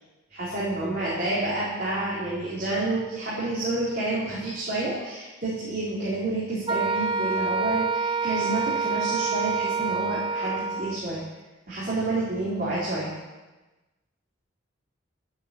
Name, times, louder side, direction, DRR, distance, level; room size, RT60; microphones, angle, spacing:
voice 1, 0.3-11.2 11.7-13.1, right 2 dB, 45° right, -8 dB, 4.0 m, -29 dB
Wind instrument woodwind instrument, 6.7-11.0, right 4 dB, 25° right, 0.4 m, -27 dB
12.5 x 8.9 x 8.4 m, 1.1 s
head